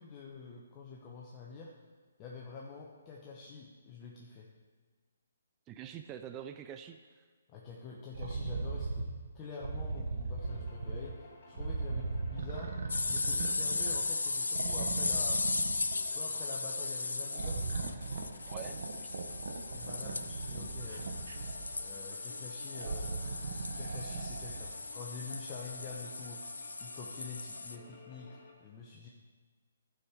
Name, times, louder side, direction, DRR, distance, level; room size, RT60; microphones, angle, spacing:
voice 1, 0.0-1.7 2.2-4.5 7.5-9.1 9.3-12.7 13.0-15.4 16.1-17.6 19.7-21.1 21.8-23.4 23.8-29.1, left 4 dB, 25° left, -3 dB, 0.9 m, -47 dB
voice 2, 5.7-7.3 18.5-19.1, right 9 dB, 20° right, 7 dB, 0.3 m, -46 dB
sound 1, 8.1-9.1 9.6-11.1 11.6-14.2 14.5-16.1 17.3-21.8 22.7-24.7 25.6-25.7, right 4 dB, 65° right, 0.9 m, -38 dB
sound 2, 10.4-28.5, left 3 dB, 50° left, 1.7 m, -56 dB
sound 3, 12.9-27.8, left 3 dB, 85° left, 0.5 m, -37 dB
11.5 x 5.0 x 4.8 m, 1.5 s
hypercardioid pair, 145°, 0 cm